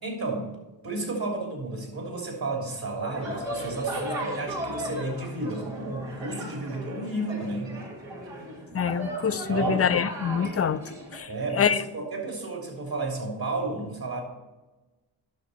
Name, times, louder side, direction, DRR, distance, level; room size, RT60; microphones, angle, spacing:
voice 1, 0.0-0.5 0.8-7.7 9.3-9.9 11.3-14.2, right 2 dB, 55° right, 0 dB, 3.2 m, -32 dB
sound 1, 3.1-11.2, right 1 dB, 75° right, 2.2 m, -36 dB
voice 2, 8.7-10.8 11.2-11.3 11.6-11.8, left 7 dB, 35° left, 14 dB, 0.5 m, -25 dB
10.5 x 6.1 x 4.2 m, 1.1 s
cardioid pair, 45°, 44 cm